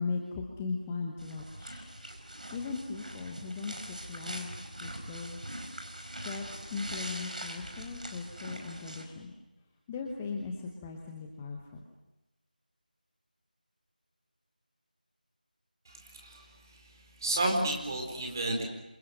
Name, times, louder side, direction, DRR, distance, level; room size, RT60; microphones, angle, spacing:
voice 1, 0.0-1.9 2.5-5.5 6.1-9.3 9.9-11.8, left 4 dB, 10° left, 1 dB, 1.1 m, -38 dB
sound 1, 1.2-9.0, right 1 dB, 55° right, 5.2 m, -42 dB
voice 2, 15.9-16.8 17.2-18.7, right 1 dB, 25° right, 1 dB, 4.5 m, -32 dB
29.0 x 27.0 x 6.5 m, 1.0 s
figure-of-eight pair, 165°, 5 cm